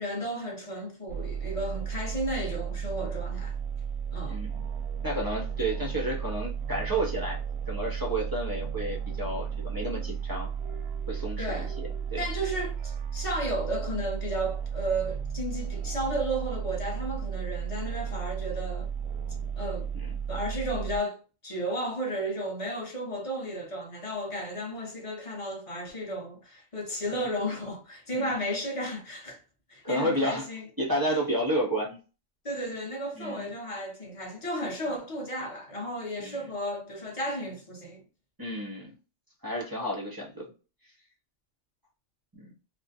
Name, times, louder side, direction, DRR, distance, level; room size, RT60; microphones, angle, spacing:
voice 1, 0.0-3.6 4.1-4.4 11.4-11.7 12.2-18.9 19.6-19.9 20.3-29.4 29.7-30.7 31.1-31.2 32.4-38.0, right 1 dB, 35° left, 0.6 m, -33 dB
sound 1, 1.1-21.0, right 7 dB, 65° right, 0.7 m, -34 dB
voice 2, 4.2-4.6 5.0-7.4 7.7-10.5 11.1-12.2 19.9-20.1 27.1-27.3 28.1-28.4 29.8-30.5 30.8-32.0 33.1-33.5 36.2-36.5 38.4-38.9 39.4-40.5 42.3-42.5, right 1 dB, 30° right, 0.4 m, -31 dB
2.4 x 2.1 x 2.6 m
omnidirectional pair, 1.3 m